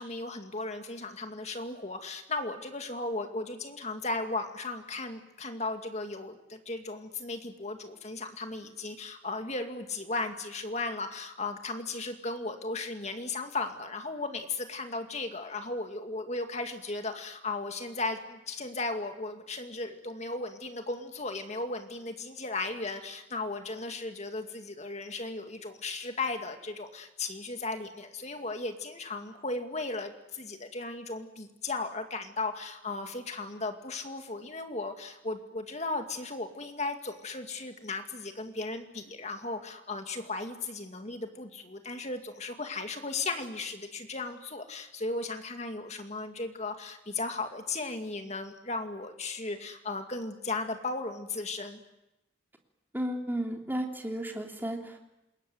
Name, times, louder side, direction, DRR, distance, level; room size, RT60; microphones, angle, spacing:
voice 1, 0.0-51.8, left 3 dB, 35° left, 6 dB, 2.4 m, -36 dB
voice 2, 52.9-55.0, right 1 dB, 10° right, 2 dB, 3.1 m, -33 dB
27.5 x 21.5 x 9.4 m, 0.92 s
head